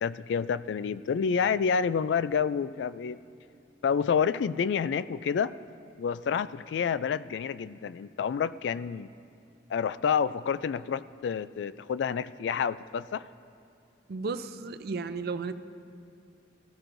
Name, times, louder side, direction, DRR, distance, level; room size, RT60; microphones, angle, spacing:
voice 1, 0.0-3.2 3.8-5.5 6.0-9.1 9.7-13.2, left 6 dB, 70° left, 16 dB, 0.3 m, -28 dB
voice 2, 14.1-15.5, right 4 dB, 60° right, 11 dB, 0.5 m, -34 dB
17.5 x 13.5 x 2.6 m, 2.5 s
head